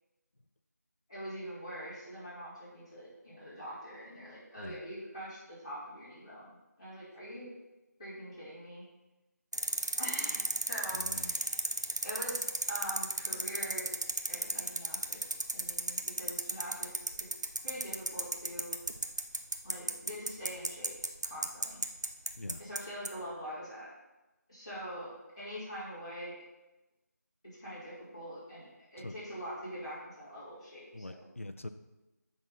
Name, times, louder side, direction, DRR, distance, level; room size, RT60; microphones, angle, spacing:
voice 1, 1.1-7.5 8.0-8.8 10.0-11.4 12.0-13.9 14.3-17.0 17.6-18.7 19.6-20.9 21.2-21.8 22.6-23.9 24.5-26.3 27.6-31.3, equal, 20° left, -12 dB, 3.3 m, -44 dB
sound 1, 9.5-22.8 23.1-23.2, right 2 dB, 75° right, 0.8 m, -33 dB
voice 2, 10.9-11.3 22.3-22.6 29.0-29.1 30.9-31.7, left 2 dB, 50° left, 9 dB, 0.5 m, -43 dB
7.7 x 6.0 x 5.7 m, 1.0 s
figure-of-eight pair, 180°, 10 cm